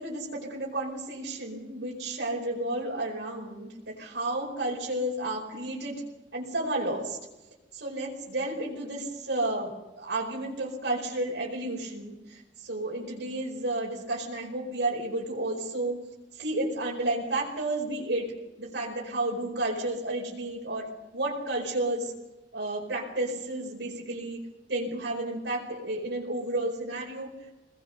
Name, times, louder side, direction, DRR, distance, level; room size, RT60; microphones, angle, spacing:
voice 1, 0.0-6.0 6.3-7.2 7.7-9.7 10.0-16.0 16.3-22.1 22.5-24.4 24.7-27.3, right 2 dB, 75° right, -3 dB, 5.0 m, -32 dB
23.0 x 20.5 x 6.8 m, 1.0 s
head